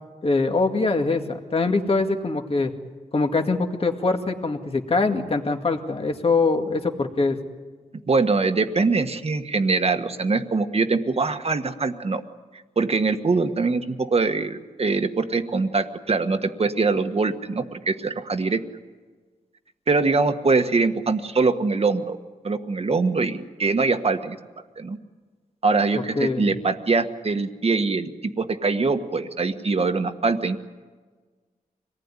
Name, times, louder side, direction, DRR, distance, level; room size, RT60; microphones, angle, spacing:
voice 1, 0.2-2.7 3.1-7.4 25.9-26.4, left 3 dB, 45° left, 4 dB, 2.1 m, -23 dB
voice 2, 8.1-12.2 12.7-18.6 19.9-22.2 22.4-24.4 24.8-25.0 25.6-30.6, right 4 dB, 45° right, 7 dB, 1.5 m, -23 dB
25.5 x 19.0 x 9.8 m, 1.4 s
wide cardioid pair, 110°, 14 cm